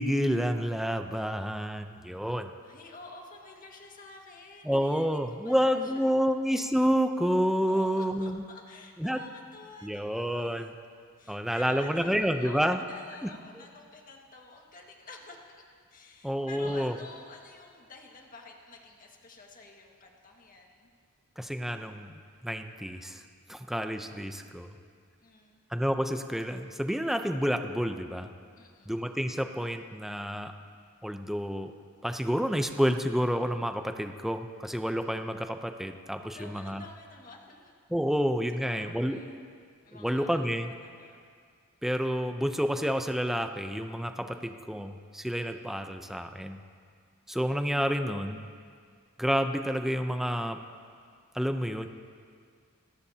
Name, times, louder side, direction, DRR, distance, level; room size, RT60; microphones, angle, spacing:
voice 1, 0.0-2.5 4.6-8.4 9.0-9.2 9.8-10.7 11.3-12.8 13.2-13.3 16.2-16.9 21.4-22.1 22.4-23.2 23.5-24.7 25.7-28.3 28.9-30.5 31.0-31.7 32.0-36.8 37.9-39.2 39.9-40.7 41.8-46.6 47.3-48.5 49.2-50.6 51.3-51.9, equal, ahead, 6 dB, 0.6 m, -29 dB
voice 2, 2.6-5.1 5.4-6.3 7.7-10.7 11.2-15.4 15.9-20.9 25.2-25.6 28.6-28.9 36.3-37.7 38.6-39.4 39.8-40.4 40.7-41.2 44.3-44.5, left 3 dB, 40° left, 0 dB, 1.8 m, -50 dB
29.0 x 14.0 x 2.8 m, 2.1 s
head